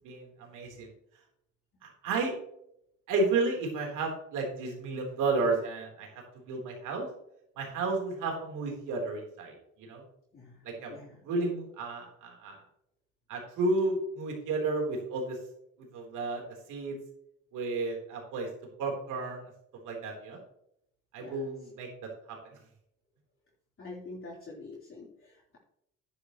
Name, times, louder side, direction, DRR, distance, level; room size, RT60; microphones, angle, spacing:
voice 1, 0.0-0.9 1.8-2.3 3.1-7.1 7.6-10.0 10.6-10.9 11.2-12.6 13.3-15.4 15.9-16.4 16.7-17.0 17.5-18.5 18.8-19.4 19.8-20.4 21.1-22.4, right 3 dB, 90° right, 0 dB, 3.7 m, -32 dB
voice 2, 10.3-10.6 10.9-11.2 21.2-21.3 23.8-25.6, left 3 dB, 45° left, -5 dB, 3.8 m, -46 dB
10.5 x 10.0 x 3.0 m, 0.75 s
cardioid pair, 90°, 30 cm